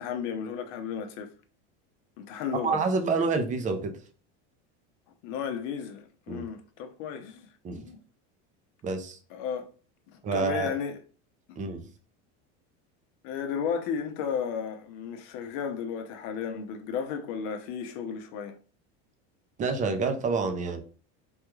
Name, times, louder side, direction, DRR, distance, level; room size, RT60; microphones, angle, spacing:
voice 1, 0.0-1.3 2.2-2.8 5.2-8.0 9.3-9.7 10.1-11.0 11.5-11.6 13.2-18.6, left 7 dB, 60° left, 0.7 m, -34 dB
voice 2, 2.6-4.0 6.3-6.4 7.6-7.9 8.8-9.2 10.2-10.7 11.6-11.8 19.6-20.8, right 4 dB, 20° right, 0.5 m, -28 dB
3.5 x 2.3 x 3.0 m
supercardioid pair, 135°, 34 cm